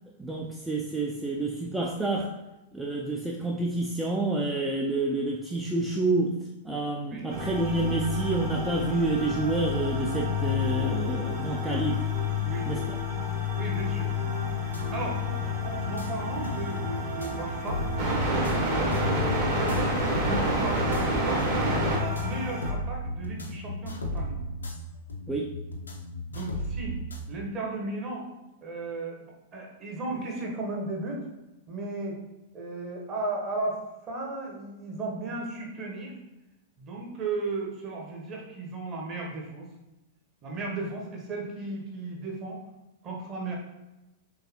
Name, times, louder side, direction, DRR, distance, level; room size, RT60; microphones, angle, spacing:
voice 1, 0.2-2.3 2.7-6.4 6.7-12.0 12.7-13.0 25.3-25.5, right 2 dB, 5° right, -2 dB, 0.4 m, -28 dB
sound 1, 7.3-22.7, left 2 dB, 50° right, 1.4 m, -29 dB
voice 2, 13.5-14.1 14.9-17.8 18.7-21.5 21.9-24.4 26.3-27.0 27.3-28.2 28.6-31.2 31.7-32.2 32.5-36.2 36.8-39.7 40.4-42.6 43.0-43.5, right 3 dB, 30° right, -1 dB, 1.0 m, -35 dB
sound 2, 14.7-27.2, equal, 80° left, 0.5 m, -36 dB
3.9 x 3.3 x 2.9 m, 1.0 s
figure-of-eight pair, 100°, 0 cm